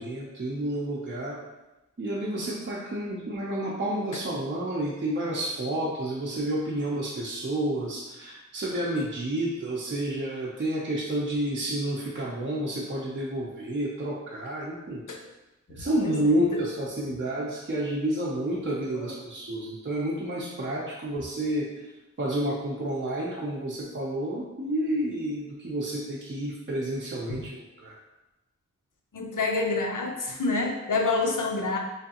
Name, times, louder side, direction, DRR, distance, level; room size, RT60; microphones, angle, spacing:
voice 1, 0.0-1.4 2.0-15.0 15.7-21.7 22.2-28.0, right 1 dB, 40° right, -5 dB, 0.6 m, -30 dB
voice 2, 16.0-16.4 18.9-19.2 27.3-27.4 29.1-31.8, left 3 dB, 85° left, 1 dB, 0.6 m, -28 dB
3.5 x 3.2 x 2.9 m, 1.0 s
wide cardioid pair, 65°, 30 cm